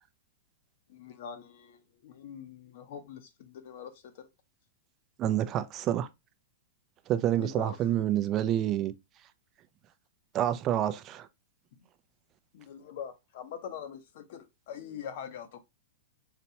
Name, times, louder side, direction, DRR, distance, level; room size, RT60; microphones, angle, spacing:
voice 1, 0.9-4.3 7.4-7.9 12.5-15.6, left 8 dB, 55° left, 0.7 m, -43 dB
voice 2, 5.2-6.1 7.1-8.9 10.3-11.3, right 11 dB, 25° right, 0.4 m, -28 dB
4.1 x 2.2 x 2.7 m
supercardioid pair, 155°, 0 cm